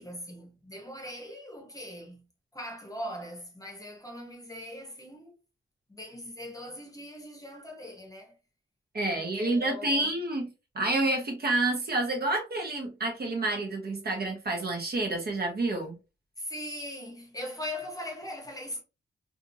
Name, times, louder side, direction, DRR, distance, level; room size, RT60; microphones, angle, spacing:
voice 1, 0.0-2.3 2.5-5.3 5.9-8.3 9.0-10.1 16.4-18.8, left 1 dB, 15° left, 0.9 m, -40 dB
voice 2, 8.9-16.0, right 2 dB, 50° right, 1.0 m, -29 dB
2.6 x 2.5 x 2.6 m
wide cardioid pair, 90°, 20 cm